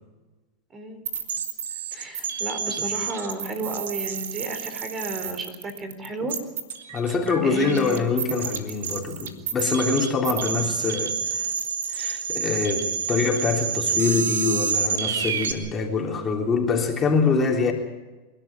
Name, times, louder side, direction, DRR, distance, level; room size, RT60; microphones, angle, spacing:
sound 1, 1.1-15.5, right 7 dB, 80° right, 2.2 m, -29 dB
voice 1, 1.9-6.3 7.4-8.0, right 2 dB, 30° right, 7 dB, 4.1 m, -33 dB
voice 2, 6.9-11.5 11.9-17.7, left 4 dB, 25° left, 1 dB, 3.5 m, -24 dB
28.0 x 12.5 x 8.9 m, 1.2 s
hypercardioid pair, 105°, 0 cm